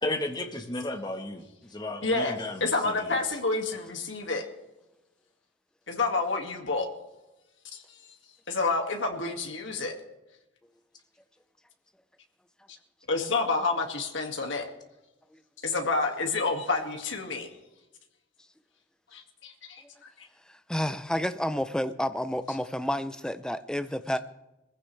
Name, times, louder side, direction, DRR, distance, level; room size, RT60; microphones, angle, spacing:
voice 1, 0.0-3.2, left 1 dB, 20° left, 4 dB, 1.5 m, -34 dB
voice 2, 2.0-4.5 5.9-6.9 7.7-7.8 8.5-9.9 12.7-12.8 13.1-14.7 15.6-17.6 19.1-19.8 20.2-20.3, left 3 dB, 75° left, 3 dB, 2.2 m, -29 dB
voice 3, 20.7-24.2, left 1 dB, 5° left, 11 dB, 0.5 m, -30 dB
22.0 x 15.0 x 3.4 m, 0.98 s
head